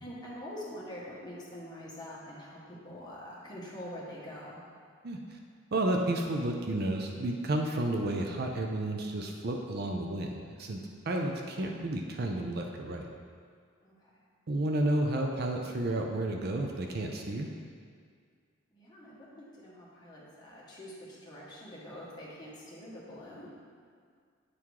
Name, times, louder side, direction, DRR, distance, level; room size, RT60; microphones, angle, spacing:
voice 1, 0.0-4.6 13.8-14.1 18.7-23.5, equal, 20° left, -6 dB, 1.4 m, -45 dB
voice 2, 5.0-5.4 5.7-13.1 14.5-17.5, right 1 dB, 50° right, 2 dB, 0.5 m, -31 dB
8.4 x 3.7 x 4.6 m, 2.1 s
head